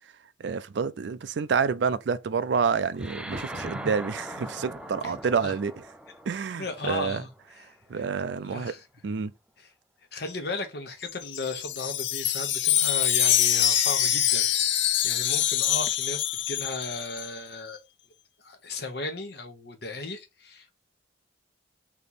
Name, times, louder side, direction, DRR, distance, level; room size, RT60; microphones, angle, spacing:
voice 1, 0.4-5.7 6.3-7.2 7.9-8.7 9.0-9.3, right 5 dB, 70° right, 0.4 m, -28 dB
Thunder, 2.2-7.1 7.8-8.3 8.6-8.7, equal, 40° right, 0.8 m, -44 dB
sound 1, 3.0-7.7, right 1 dB, 5° right, 0.3 m, -42 dB
voice 2, 6.6-7.3 7.9-8.0 8.4-8.8 9.6-9.7 10.1-17.8 18.4-20.7, left 2 dB, 60° left, 1.0 m, -36 dB
Wind chime, 11.1-17.3, left 11 dB, 75° left, 0.4 m, -25 dB
3.4 x 3.0 x 4.0 m
head